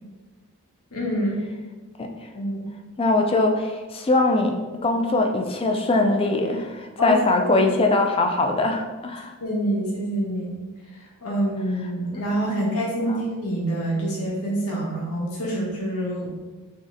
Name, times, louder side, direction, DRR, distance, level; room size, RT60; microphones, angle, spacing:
voice 1, 0.9-1.4 2.3-2.7 7.0-7.7 9.4-10.6 11.2-16.4, right 1 dB, 80° left, -4 dB, 1.0 m, -26 dB
voice 2, 3.0-9.3 12.5-12.6 13.0-13.2, left 2 dB, 25° left, 4 dB, 0.3 m, -22 dB
3.1 x 2.8 x 3.7 m, 1.3 s
head